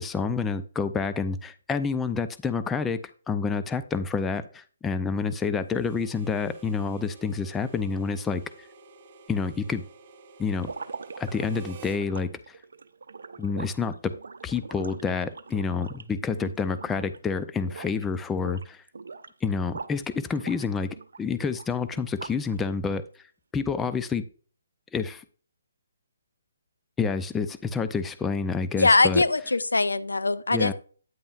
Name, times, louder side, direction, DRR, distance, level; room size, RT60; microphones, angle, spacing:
voice 1, 0.0-3.0 3.3-8.4 9.3-9.8 10.4-10.7 11.2-12.6 13.4-14.1 14.4-18.8 19.4-20.9 21.2-23.0 23.5-24.2 24.9-25.2 27.0-29.2 30.5-30.7, left 5 dB, 10° left, 0.5 m, -28 dB
Harmonica, 5.7-12.0, right 4 dB, 35° right, 0.9 m, -50 dB
sound 1, 10.6-17.2 17.5-18.0 18.3-20.0 20.3-22.5, right 4 dB, 70° right, 0.6 m, -42 dB
voice 2, 28.8-30.7, left 3 dB, 85° left, 0.6 m, -22 dB
9.3 x 8.6 x 2.5 m
figure-of-eight pair, 140°, 0 cm